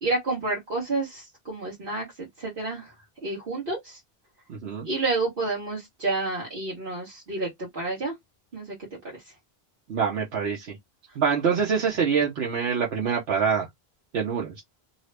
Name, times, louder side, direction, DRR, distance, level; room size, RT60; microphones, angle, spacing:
voice 1, 0.0-2.9 3.2-4.0 4.8-8.1 8.5-8.8 9.0-9.2, right 3 dB, 60° right, 1.3 m, -30 dB
voice 2, 4.5-4.9 9.9-10.8 11.2-13.7 14.1-14.6, right 6 dB, 80° right, 1.0 m, -25 dB
2.7 x 2.4 x 3.1 m
omnidirectional pair, 1.1 m